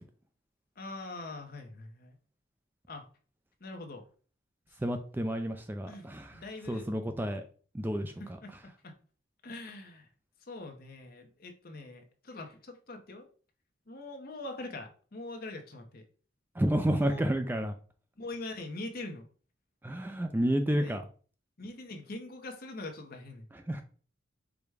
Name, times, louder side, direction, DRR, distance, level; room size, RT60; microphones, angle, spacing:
voice 1, 0.8-2.2 2.9-3.1 3.6-4.0 5.9-6.9 8.2-8.9 9.4-10.1 10.4-13.3 13.9-16.0 16.9-17.3 18.2-19.3 20.7-21.0 21.6-23.5, left 2 dB, 50° left, 4 dB, 0.8 m, -43 dB
voice 2, 4.8-6.3 6.7-7.4 7.7-8.4 16.6-17.7 19.8-21.0 23.5-23.8, right 1 dB, 10° right, 6 dB, 0.3 m, -30 dB
4.9 x 2.2 x 4.7 m, 0.40 s
head